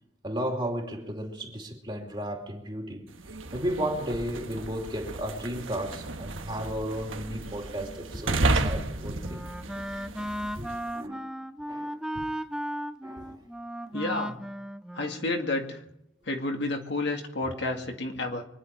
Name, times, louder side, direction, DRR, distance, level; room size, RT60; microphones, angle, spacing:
voice 1, 0.2-3.1 3.5-9.5 10.6-11.3 11.7-12.2 13.0-13.4 17.4-17.6, equal, 25° right, 2.6 m, -34 dB
sound 1, 3.1-10.9, right 2 dB, 85° right, 1.3 m, -33 dB
Wind instrument woodwind instrument, 8.7-15.8, equal, 5° right, 0.5 m, -36 dB
voice 2, 13.9-14.4 15.0-15.8 16.3-18.4, left 2 dB, 60° left, 2.1 m, -30 dB
25.0 x 10.5 x 4.7 m
head